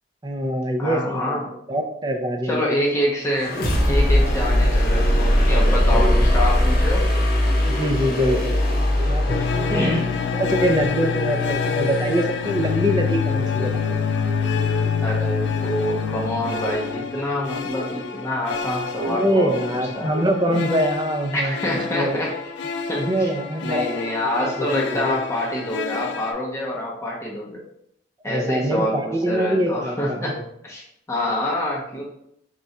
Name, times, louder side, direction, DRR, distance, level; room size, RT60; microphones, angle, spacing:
voice 1, 0.2-1.4 1.7-2.6 5.5-6.3 7.7-8.6 9.0-10.0 10.3-14.1 19.1-21.6 21.9-22.2 23.0-24.0 24.4-25.2 28.3-30.5, equal, 25° right, 4 dB, 0.5 m, -24 dB
voice 2, 0.8-1.5 2.4-3.6 3.9-7.1 9.7-10.1 15.0-19.5 20.0-20.1 21.3-22.4 22.9-23.3 23.6-27.6 28.2-30.4 30.6-32.0, left 1 dB, 15° left, -4 dB, 0.7 m, -26 dB
sound 1, 3.3-13.1, left 1 dB, 55° left, 0.8 m, -21 dB
sound 2, 4.4-6.3 7.1-10.1 10.9-15.7 16.4-18.2 19.0-19.7 20.1-20.6, right 2 dB, 45° right, 0.9 m, -37 dB
sound 3, 9.3-26.3, left 6 dB, 70° left, 0.4 m, -27 dB
3.7 x 2.3 x 4.1 m, 0.74 s
head